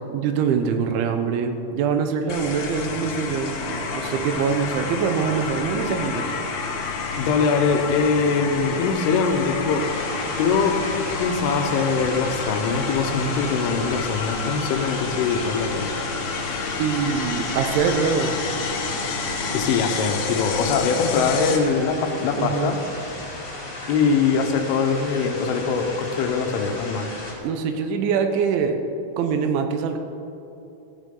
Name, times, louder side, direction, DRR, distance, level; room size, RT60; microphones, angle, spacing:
voice 1, 0.1-6.3 16.8-18.4 22.4-22.7 27.4-28.8 29.2-30.0, right 6 dB, 80° right, 6 dB, 3.2 m, -24 dB
sound 1, 2.3-21.6, left 4 dB, 70° left, 2.3 m, -29 dB
voice 2, 7.2-9.9 10.4-10.8 11.2-15.9 19.5-22.8 23.0-23.5 23.9-27.1, left 5 dB, 90° left, 4 dB, 3.6 m, -22 dB
sound 2, 9.8-27.3, left 2 dB, 30° left, 2.2 m, -35 dB
15.5 x 15.0 x 3.8 m, 2.8 s
omnidirectional pair, 5.5 m